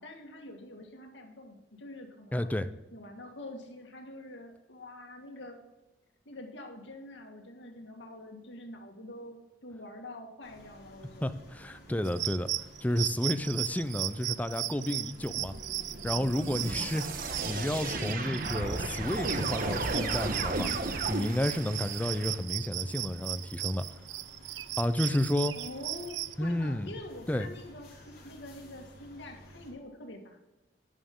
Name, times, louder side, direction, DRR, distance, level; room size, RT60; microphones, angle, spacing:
voice 1, 0.0-2.5 2.9-5.6 6.3-11.3 16.5-17.0 25.5-30.4, left 1 dB, 85° left, 2 dB, 1.9 m, -46 dB
voice 2, 2.3-2.7 11.2-12.5 12.8-15.5 16.0-23.8 24.8-25.5 26.4-26.9 27.3-27.5, left 1 dB, 10° left, 11 dB, 0.5 m, -31 dB
sound 1, 10.4-29.7, equal, 60° left, 3.4 m, -53 dB
sound 2, 12.0-26.3, right 15 dB, 75° right, 0.4 m, -37 dB
sound 3, 15.2-22.3, right 2 dB, 55° right, 1.2 m, -34 dB
11.5 x 9.2 x 3.8 m, 1.0 s
head